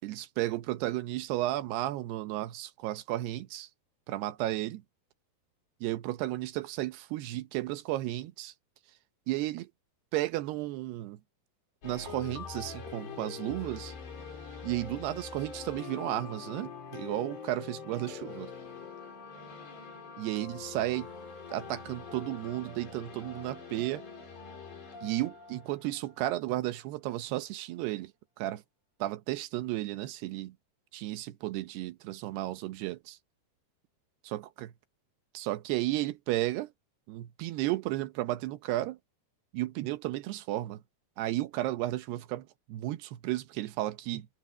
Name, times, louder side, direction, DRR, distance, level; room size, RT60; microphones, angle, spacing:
voice 1, 0.0-3.7 4.1-4.8 5.8-8.5 9.3-9.7 10.1-11.2 11.8-13.9 14.6-18.5 20.2-21.1 21.5-24.0 25.0-28.1 28.4-28.6 29.0-30.5 30.9-33.2 34.2-34.7 35.3-36.7 37.1-39.0 39.5-40.8 41.2-44.3, right 16 dB, 80° right, 2.9 m, -33 dB
sound 1, 11.8-26.7, left 6 dB, 90° left, 8.2 m, -44 dB
omnidirectional pair, 4.8 m